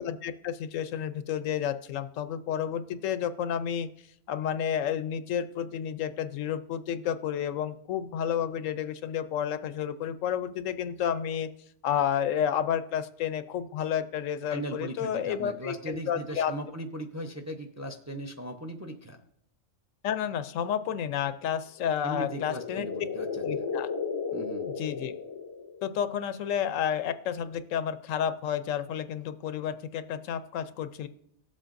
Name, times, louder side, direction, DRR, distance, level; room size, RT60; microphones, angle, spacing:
voice 1, 0.0-3.9 4.3-11.5 11.8-16.5 20.0-22.9 23.4-23.9 24.8-25.2 25.8-31.1, left 9 dB, 90° left, 12 dB, 1.0 m, -31 dB
voice 2, 14.5-19.2 22.0-23.4 24.3-24.7, right 1 dB, 20° right, 5 dB, 0.5 m, -38 dB
sound 1, 21.8-26.0, left 5 dB, 35° left, 0.3 m, -35 dB
18.5 x 7.5 x 2.6 m, 0.74 s
omnidirectional pair, 1.3 m